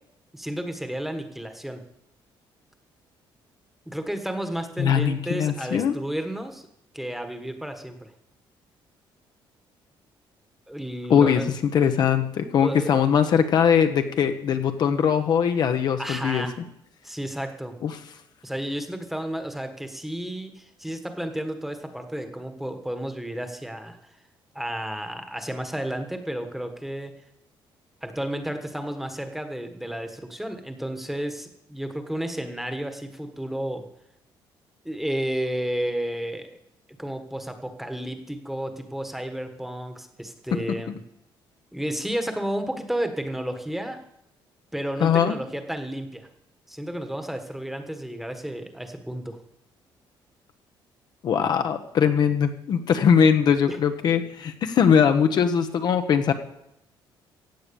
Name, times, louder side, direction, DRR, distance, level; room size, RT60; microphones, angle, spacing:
voice 1, 0.3-1.8 3.9-6.6 6.9-8.1 10.7-11.4 12.6-12.9 16.0-16.5 17.0-17.7 18.4-24.0 24.5-27.1 28.0-33.8 34.8-36.6 37.0-41.0 41.7-44.0 44.7-46.3 46.7-49.4 53.7-53.8, right 1 dB, 5° right, 7 dB, 1.4 m, -32 dB
voice 2, 4.8-5.9 11.1-11.4 11.7-16.5 17.8-17.9 45.0-45.3 51.2-56.3, left 7 dB, 50° left, 7 dB, 1.0 m, -21 dB
15.5 x 8.8 x 7.0 m, 0.80 s
cardioid pair, 160°, 9 cm